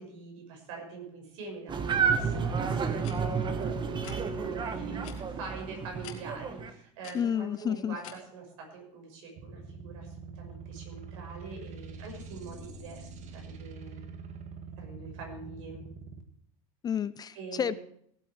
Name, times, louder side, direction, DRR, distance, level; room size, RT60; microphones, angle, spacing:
voice 1, 0.0-14.1 14.8-15.9 17.3-17.8, right 4 dB, 75° right, 2 dB, 6.2 m, -44 dB
sound 1, 1.7-6.7, right 6 dB, 25° right, 1.4 m, -31 dB
sound 2, 3.0-3.1 4.0-4.2 5.0-5.2 6.0-6.2 7.0-7.1 8.0-8.1, left 12 dB, 75° left, 2.5 m, -45 dB
voice 2, 7.1-8.0 16.8-17.7, left 8 dB, 25° left, 18 dB, 0.4 m, -30 dB
sound 3, 9.4-16.2, right 5 dB, 45° right, 1.7 m, -44 dB
18.0 x 8.5 x 4.6 m, 0.67 s
supercardioid pair, 115°, 18 cm